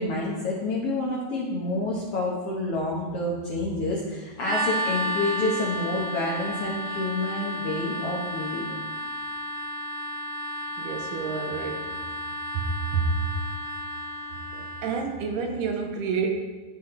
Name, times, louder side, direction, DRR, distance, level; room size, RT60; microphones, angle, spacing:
voice 1, 0.0-8.8, left 2 dB, 80° left, -4 dB, 1.3 m, -28 dB
sound 1, 4.4-15.0, equal, 45° right, 2.6 m, -32 dB
voice 2, 10.8-12.0 12.5-13.2 14.5-16.3, right 5 dB, 80° right, 4 dB, 2.1 m, -29 dB
10.0 x 6.3 x 3.8 m, 1.3 s
omnidirectional pair, 4.1 m